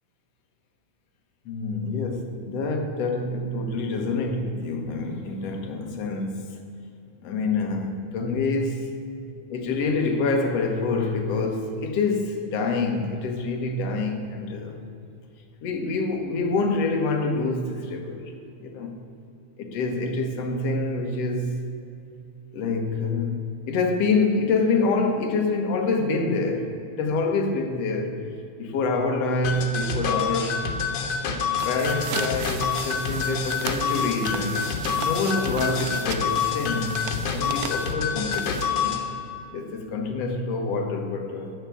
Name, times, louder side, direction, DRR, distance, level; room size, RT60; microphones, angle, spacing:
voice 1, 1.5-6.6 7.2-8.9 9.5-14.8 15.6-18.2 18.6-18.9 19.6-21.5 22.5-23.4 23.6-28.2 28.6-30.6 31.4-34.7 35.0-38.9 39.5-41.5, left 3 dB, 60° left, 4 dB, 2.2 m, -26 dB
sound 1, 29.4-39.0, left 6 dB, 85° left, 2.7 m, -27 dB
sound 2, 31.4-39.0, right 9 dB, 85° right, 2.1 m, -36 dB
13.0 x 5.9 x 9.5 m, 2.6 s
omnidirectional pair, 3.5 m